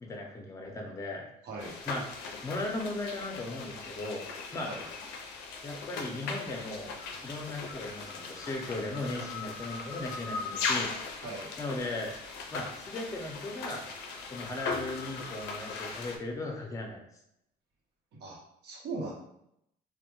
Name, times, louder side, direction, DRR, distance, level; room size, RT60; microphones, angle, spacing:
voice 1, 0.0-1.3 1.9-2.0 2.4-4.2 4.5-4.7 5.6-6.9 7.2-10.9 11.6-12.1 12.5-13.8 14.3-17.0, left 2 dB, 20° left, 1 dB, 0.5 m, -37 dB
sound 1, 1.6-16.2, left 4 dB, 80° left, 0.4 m, -39 dB
voice 2, 18.1-19.1, right 3 dB, 80° right, -3 dB, 0.8 m, -39 dB
2.1 x 2.1 x 2.9 m, 0.78 s
cardioid pair, 110°, 17 cm